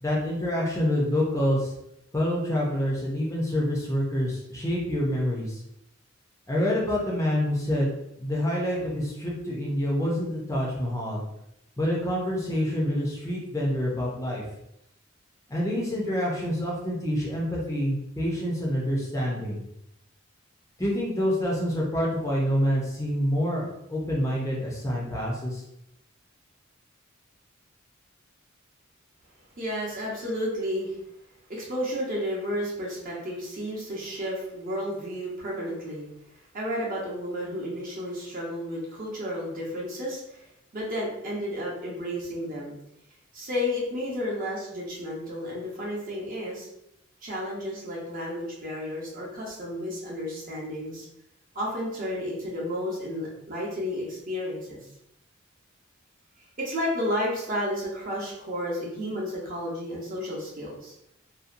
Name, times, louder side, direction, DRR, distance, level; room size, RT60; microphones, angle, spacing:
voice 1, 0.0-1.7 2.1-5.6 6.5-7.9 8.2-11.2 11.8-14.4 15.5-19.6 20.8-25.6, equal, 15° left, -4 dB, 0.5 m, -27 dB
voice 2, 29.6-31.0 31.5-36.1 36.5-40.5 40.7-42.7 43.3-46.7 47.2-51.1 51.5-54.8 56.6-60.9, equal, 45° right, -4 dB, 0.8 m, -32 dB
2.7 x 2.1 x 2.5 m, 0.81 s
head